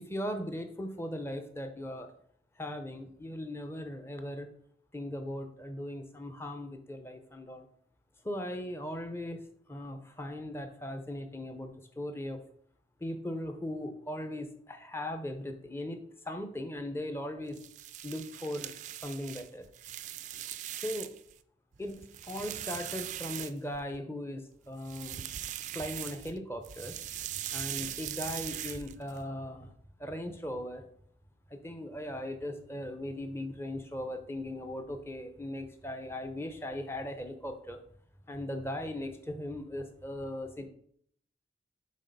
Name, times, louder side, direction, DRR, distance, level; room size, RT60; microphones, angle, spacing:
voice 1, 0.0-2.1 2.6-4.5 4.9-7.7 8.2-9.4 9.7-12.4 13.0-16.0 16.2-17.6 18.0-18.7 19.0-19.6 20.8-21.1 21.8-25.3 25.7-26.9 27.5-29.7 30.0-30.9 31.5-37.8 38.3-40.7, left 1 dB, 15° left, 6 dB, 0.7 m, -38 dB
sound 1, 17.5-21.3 21.7-24.0 24.7-26.4 26.6-29.2, right 12 dB, 40° right, 0.3 m, -40 dB
6.3 x 4.1 x 5.2 m, 0.65 s
head